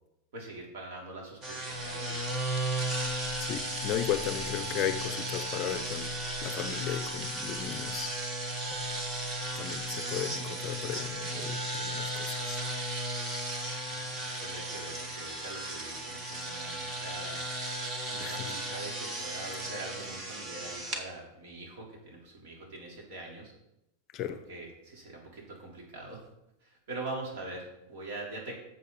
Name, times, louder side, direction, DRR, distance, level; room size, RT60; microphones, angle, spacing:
voice 1, 0.3-2.2 10.7-10.8 13.9-17.4 18.1-23.5 24.3-26.2 26.6-28.6, right 2 dB, 60° right, 4.0 m, -43 dB
sound 1, 1.4-21.0, right 1 dB, 25° right, 1.4 m, -35 dB
voice 2, 3.4-6.1 6.4-8.1 9.5-12.6 18.2-18.5 24.1-24.4, left 10 dB, 30° left, 0.6 m, -35 dB
12.0 x 7.3 x 4.2 m
supercardioid pair, 165°, 0 cm